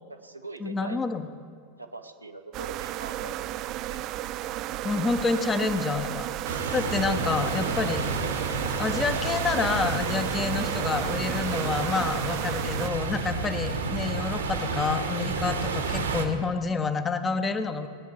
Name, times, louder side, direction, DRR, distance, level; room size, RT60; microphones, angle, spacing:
voice 1, 0.1-1.0 1.8-3.5 3.8-4.0 5.4-5.6 7.1-7.8, right 2 dB, 85° right, 5 dB, 0.9 m, -41 dB
voice 2, 0.6-1.2 4.8-6.3 6.7-8.0 8.8-17.9, left 4 dB, 20° left, 8 dB, 0.8 m, -28 dB
sound 1, 2.5-12.9, right 14 dB, 40° right, 0.3 m, -33 dB
sound 2, 6.4-16.3, right 3 dB, 65° right, 1.3 m, -30 dB
19.0 x 9.1 x 4.6 m, 2.2 s
figure-of-eight pair, 90°, 0 cm